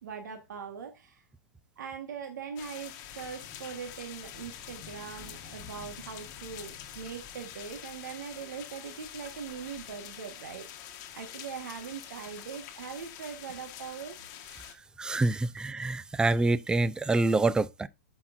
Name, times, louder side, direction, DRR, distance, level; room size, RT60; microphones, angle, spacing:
voice 1, 0.0-1.2 1.8-14.1, right 6 dB, 85° right, 1.4 m, -41 dB
sound 1, 2.6-14.7, left 10 dB, 45° left, 1.3 m, -46 dB
voice 2, 15.0-17.9, right 2 dB, 10° right, 0.4 m, -26 dB
8.6 x 5.7 x 2.5 m
hypercardioid pair, 125°, 9 cm